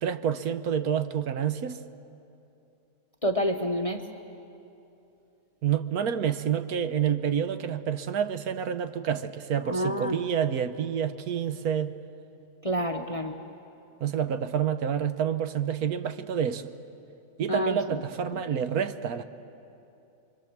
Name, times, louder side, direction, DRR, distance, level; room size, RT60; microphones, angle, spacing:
voice 1, 0.0-1.8 5.6-11.9 14.0-16.7 17.4-19.2, right 8 dB, 70° right, 10 dB, 1.2 m, -28 dB
voice 2, 3.2-4.0 9.6-10.2 12.6-13.4 17.5-18.0 18.3-18.4, equal, 30° left, 5 dB, 0.8 m, -28 dB
26.0 x 24.0 x 7.3 m, 2.8 s
omnidirectional pair, 1.7 m